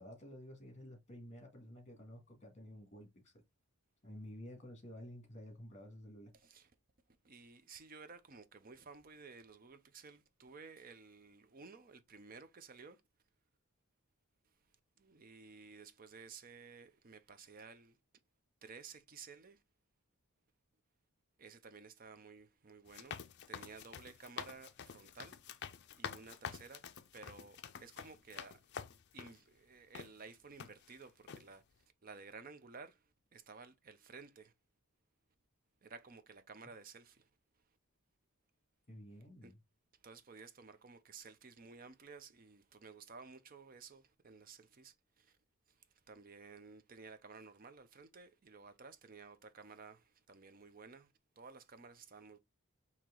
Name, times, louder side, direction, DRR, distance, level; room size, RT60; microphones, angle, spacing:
voice 1, 0.0-3.4 4.0-6.3 38.9-39.6, equal, 30° left, 1.7 m, -52 dB
voice 2, 6.3-6.7 7.1-13.0 14.4-18.0 18.6-19.6 21.4-25.3 26.0-28.7 29.1-34.5 35.8-37.3 37.5-37.6 39.4-39.5 39.9-45.4 45.7-52.4, right 4 dB, 40° right, 0.5 m, -55 dB
sound 1, 22.9-29.4 29.9-30.1 30.6-31.0 31.3-31.5, left 7 dB, 50° left, 0.4 m, -48 dB
4.5 x 2.9 x 3.7 m
head